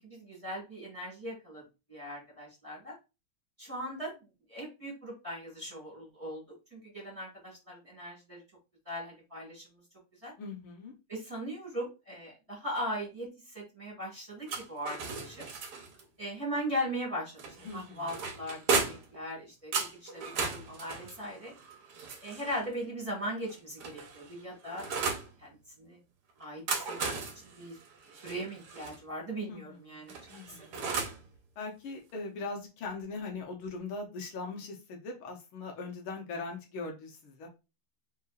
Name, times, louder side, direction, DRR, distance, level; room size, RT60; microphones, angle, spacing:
voice 1, 0.0-1.6 1.9-3.0 3.6-4.2 4.5-6.4 6.7-8.4 8.9-9.6 10.2-10.3 11.1-15.5 16.2-21.5 22.2-26.0 26.4-27.8 28.2-30.2 30.5-30.6, equal, 15° right, -3 dB, 1.7 m, -39 dB
voice 2, 10.4-10.9 17.6-18.2 29.5-30.7 31.6-37.5, left 3 dB, 75° left, 1 dB, 1.8 m, -40 dB
sound 1, 14.5-16.0 17.4-19.2 19.7-22.6 23.5-25.3 26.4-29.0 30.1-31.2, right 4 dB, 60° right, 1.2 m, -35 dB
4.3 x 3.7 x 2.4 m, 0.28 s
omnidirectional pair, 2.3 m